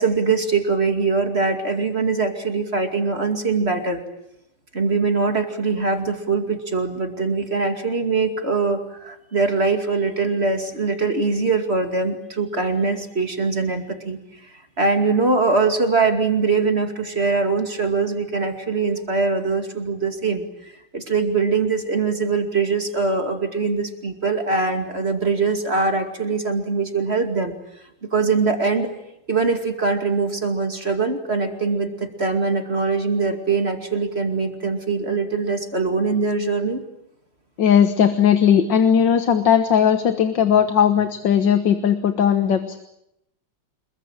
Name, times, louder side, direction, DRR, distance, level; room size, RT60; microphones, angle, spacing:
voice 1, 0.0-4.0 4.7-14.2 14.8-27.5 28.1-28.9 29.3-36.8, right 4 dB, 30° right, 6 dB, 2.6 m, -22 dB
voice 2, 37.6-42.8, left 8 dB, 65° left, 9 dB, 2.0 m, -17 dB
27.0 x 22.0 x 8.9 m, 0.82 s
omnidirectional pair, 2.1 m